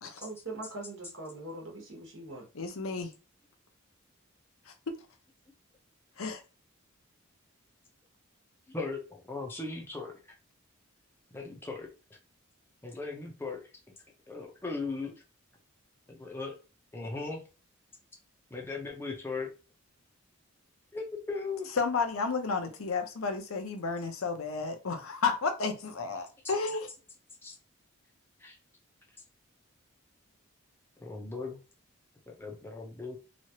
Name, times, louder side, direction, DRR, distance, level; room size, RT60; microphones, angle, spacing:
voice 1, 0.2-2.4, right 2 dB, 60° right, -2 dB, 1.1 m, -42 dB
voice 2, 2.5-3.1 4.7-4.8 6.2-6.4 21.8-26.9, left 4 dB, 75° left, 6 dB, 0.7 m, -32 dB
voice 3, 8.7-10.1 11.3-11.9 12.8-13.6 14.3-15.1 16.1-16.5 16.9-17.4 18.5-19.5 20.9-21.7 27.4-27.5 28.4-28.5 31.0-31.6 32.3-33.2, left 3 dB, 10° left, 0 dB, 0.6 m, -37 dB
3.1 x 2.4 x 2.8 m, 0.32 s
head